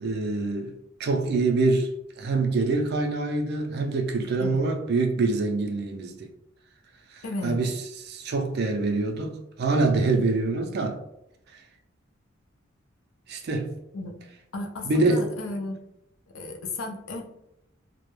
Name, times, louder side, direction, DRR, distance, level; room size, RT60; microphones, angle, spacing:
voice 1, 0.0-1.9 2.2-6.3 7.1-7.7 8.1-11.0 13.3-13.7 14.8-15.3, right 3 dB, 55° right, 0.4 m, -25 dB
voice 2, 7.2-7.6 13.9-14.1 14.5-15.8 16.3-17.3, left 2 dB, 75° left, 0.5 m, -34 dB
2.2 x 2.0 x 3.1 m
head